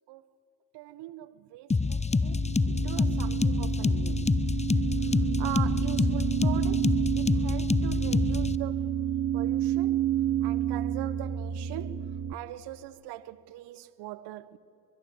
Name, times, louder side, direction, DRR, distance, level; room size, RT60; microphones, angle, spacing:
voice 1, 0.7-4.3 5.4-8.9 9.3-10.0 10.4-14.6, right 15 dB, 70° right, 1.0 m, -42 dB
sound 1, 1.7-8.6, left 4 dB, 15° left, 0.9 m, -27 dB
sound 2, 2.2-12.3, right 11 dB, 45° right, 1.2 m, -30 dB
23.0 x 21.5 x 8.6 m
hypercardioid pair, 45°, 42 cm